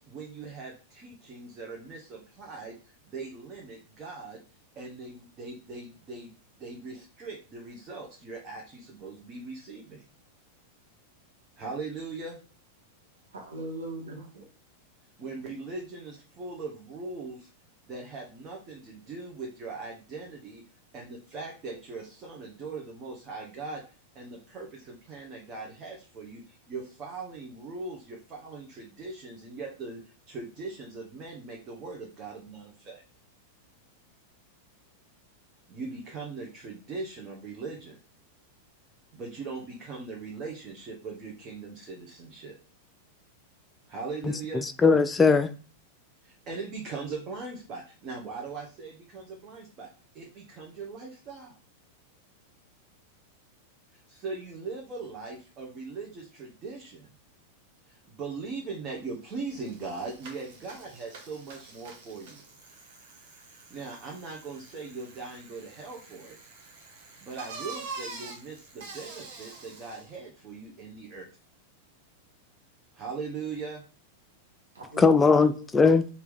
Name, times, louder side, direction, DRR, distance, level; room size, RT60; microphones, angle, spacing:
voice 1, 0.0-4.4 4.8-10.0 11.6-12.4 15.2-17.5 17.9-20.6 20.9-23.8 24.1-30.0 30.3-33.0 35.7-38.0 39.1-42.5 43.9-44.7 46.2-49.9 50.1-51.5 53.9-57.1 57.9-62.4 63.5-66.4 67.2-71.3 72.9-73.8, right 4 dB, 30° right, 1.0 m, -40 dB
voice 2, 13.3-14.4 74.7-75.6, equal, 70° right, 1.2 m, -39 dB
voice 3, 44.6-45.5 75.0-76.1, left 4 dB, 15° left, 0.3 m, -20 dB
Bicycle, 59.0-59.1 59.4-70.2, right 4 dB, 50° right, 1.1 m, -46 dB
4.5 x 2.8 x 3.5 m
figure-of-eight pair, 90°, 0 cm